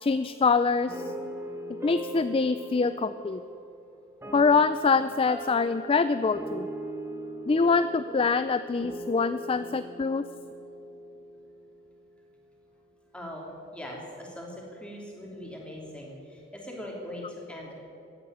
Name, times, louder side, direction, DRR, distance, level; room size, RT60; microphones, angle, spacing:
voice 1, 0.0-1.0 1.8-3.4 4.3-6.7 7.5-10.2, left 4 dB, 25° left, 12 dB, 0.3 m, -24 dB
sound 1, 0.9-12.0, right 1 dB, 10° right, 1.6 m, -40 dB
voice 2, 13.1-17.7, left 1 dB, 5° left, -2 dB, 3.1 m, -41 dB
15.5 x 9.6 x 9.6 m, 2.7 s
head